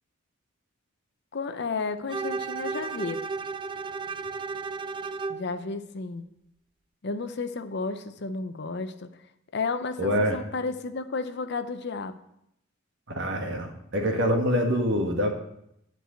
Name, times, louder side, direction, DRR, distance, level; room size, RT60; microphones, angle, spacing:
voice 1, 1.3-3.2 5.3-6.3 7.0-9.1 9.5-12.1, left 4 dB, 55° left, 10 dB, 0.7 m, -32 dB
Bowed string instrument, 2.1-5.5, right 4 dB, 25° right, 0.4 m, -33 dB
voice 2, 10.0-10.4 13.1-15.3, equal, 60° right, 3 dB, 1.7 m, -25 dB
10.5 x 4.7 x 7.8 m, 0.79 s
head